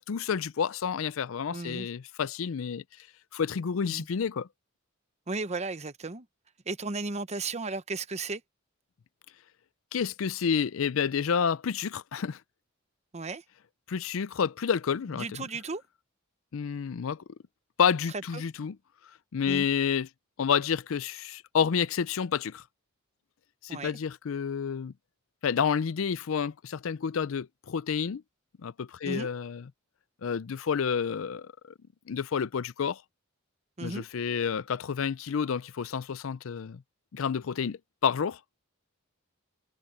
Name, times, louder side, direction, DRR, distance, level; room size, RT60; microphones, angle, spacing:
voice 1, 0.0-2.8 3.3-4.5 9.9-12.4 13.9-15.4 16.5-17.2 17.8-18.8 19.3-20.1 20.4-22.6 23.6-24.9 25.4-28.2 28.6-29.6 30.2-31.5 32.1-33.0 33.8-36.8 37.1-38.4, left 7 dB, 70° left, 0.5 m, -29 dB
voice 2, 1.5-1.9 3.8-4.0 5.3-6.3 6.7-8.4 13.1-13.4 15.1-15.8 18.3-18.4 19.5-19.7 23.7-23.9 29.0-29.3 33.8-34.0, right 3 dB, 35° right, 1.0 m, -35 dB
head